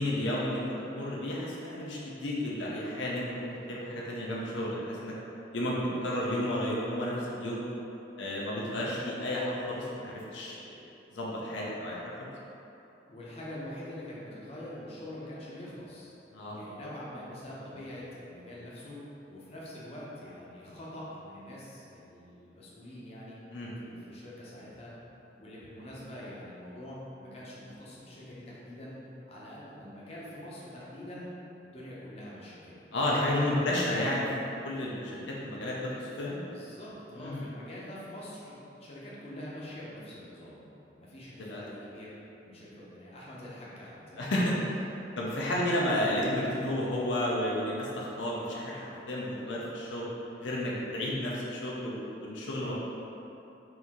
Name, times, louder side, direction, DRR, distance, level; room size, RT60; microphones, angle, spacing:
voice 1, 0.0-5.1 5.5-7.6 8.2-10.8 11.1-12.3 16.3-16.6 23.5-23.7 32.9-34.3 34.6-36.4 37.2-37.4 41.4-41.6 44.2-44.5 45.2-50.1 50.4-52.8, left 1 dB, 75° left, -5 dB, 0.6 m, -32 dB
voice 2, 13.1-16.1 16.5-19.0 19.3-23.4 23.8-24.9 25.3-29.0 29.3-31.3 31.6-32.8 33.2-33.8 36.5-40.6 41.0-42.1 42.4-44.3 44.6-44.7, left 1 dB, 35° left, -7 dB, 0.7 m, -45 dB
4.5 x 2.7 x 3.6 m, 2.9 s
head